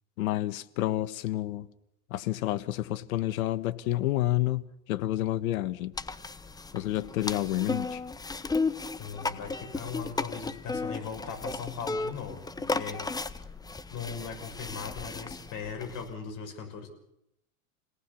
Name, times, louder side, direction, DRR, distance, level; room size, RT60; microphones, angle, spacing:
voice 1, 0.2-1.7 2.1-5.9 6.7-8.0, left 15 dB, 70° left, 14 dB, 1.5 m, -29 dB
sound 1, 5.9-16.1, left 3 dB, 10° left, 0.9 m, -35 dB
voice 2, 9.0-13.0 13.9-16.9, left 6 dB, 45° left, 5 dB, 6.4 m, -39 dB
28.5 x 18.5 x 7.0 m, 0.81 s
hypercardioid pair, 105°, 44 cm